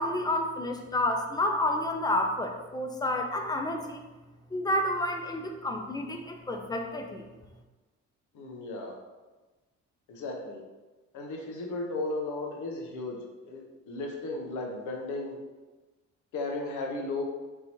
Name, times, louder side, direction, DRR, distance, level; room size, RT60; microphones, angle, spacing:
voice 1, 0.0-4.0 4.5-7.3, left 1 dB, 15° left, 4 dB, 0.6 m, -30 dB
voice 2, 8.3-9.0 10.1-10.6 11.1-13.2 13.4-15.4 16.3-17.2, left 2 dB, 80° left, 0 dB, 1.0 m, -35 dB
4.2 x 3.7 x 3.0 m, 1.2 s
cardioid pair, 90°, 30 cm